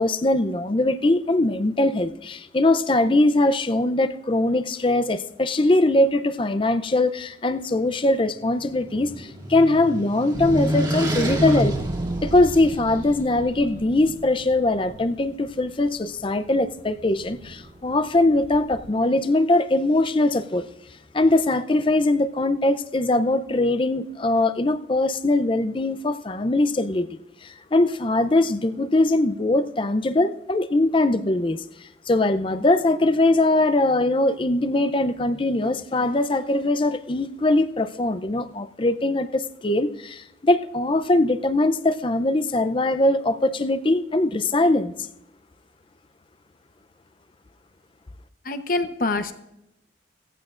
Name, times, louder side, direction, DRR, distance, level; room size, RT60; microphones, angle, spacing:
voice 1, 0.0-11.7 12.2-20.6 21.1-27.1 27.4-31.6 32.1-44.9, left 2 dB, 30° left, 11 dB, 0.5 m, -21 dB
sound 1, 8.3-13.1, equal, 25° right, 1.8 m, -28 dB
sound 2, 10.3-18.9, right 2 dB, 40° right, 0.6 m, -36 dB
voice 2, 48.4-49.3, left 2 dB, 50° left, 8 dB, 0.9 m, -25 dB
18.0 x 15.0 x 2.5 m, 0.87 s
head